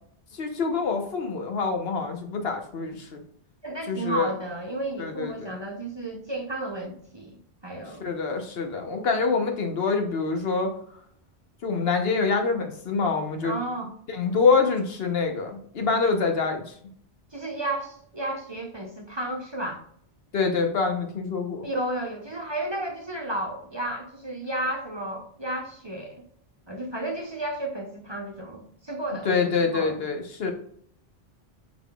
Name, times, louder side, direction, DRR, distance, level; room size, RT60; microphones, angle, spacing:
voice 1, 0.3-3.2 3.9-4.3 5.0-5.6 7.9-10.7 11.6-13.5 14.1-16.7 20.3-21.7 29.2-30.5, left 4 dB, 70° left, 4 dB, 1.1 m, -26 dB
voice 2, 3.6-7.4 7.6-8.1 13.4-13.9 17.3-19.8 21.6-26.2 26.7-30.0, right 1 dB, 30° right, 1 dB, 0.7 m, -32 dB
5.5 x 4.0 x 2.3 m, 0.63 s
omnidirectional pair, 1.0 m